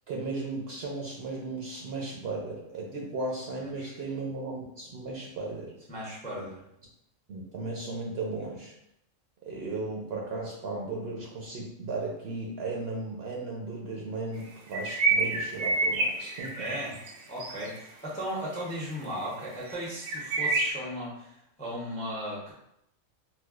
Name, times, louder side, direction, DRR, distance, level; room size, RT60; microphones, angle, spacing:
voice 1, 0.1-5.7 7.3-8.7 9.4-16.6, right 3 dB, 60° right, -2 dB, 0.8 m, -35 dB
voice 2, 3.6-4.0 5.9-6.6 16.6-17.0 17.3-22.5, equal, 10° left, -5 dB, 0.4 m, -36 dB
sound 1, 14.7-17.1 17.4-17.8 18.6-18.7 18.9-19.2 19.6-20.7, right 3 dB, 85° right, 1.0 m, -28 dB
4.2 x 2.3 x 2.3 m, 0.78 s
omnidirectional pair, 1.4 m